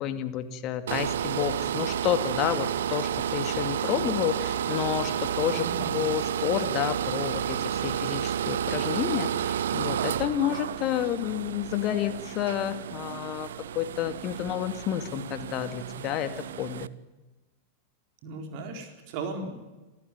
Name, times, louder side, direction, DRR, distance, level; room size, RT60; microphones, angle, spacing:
voice 1, 0.0-13.5 13.8-16.9, left 11 dB, 35° left, 10 dB, 2.1 m, -30 dB
sound 1, 0.9-16.9, right 9 dB, 60° right, 0.7 m, -31 dB
voice 2, 5.6-6.0 18.2-19.5, right 3 dB, 45° right, 4 dB, 4.2 m, -36 dB
27.0 x 14.0 x 9.4 m, 1.1 s
figure-of-eight pair, 90°, 0 cm